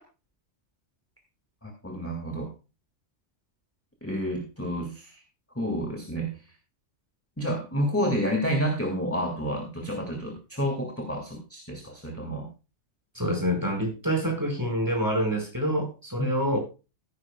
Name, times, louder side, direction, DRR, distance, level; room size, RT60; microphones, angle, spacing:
voice 1, 1.6-2.5 4.0-5.2 5.6-6.4 7.4-12.5 16.2-16.3, equal, 10° left, 2 dB, 2.0 m, -29 dB
voice 2, 13.1-16.6, equal, 15° right, 1 dB, 5.0 m, -27 dB
15.5 x 9.6 x 2.3 m, 0.30 s
omnidirectional pair, 1.2 m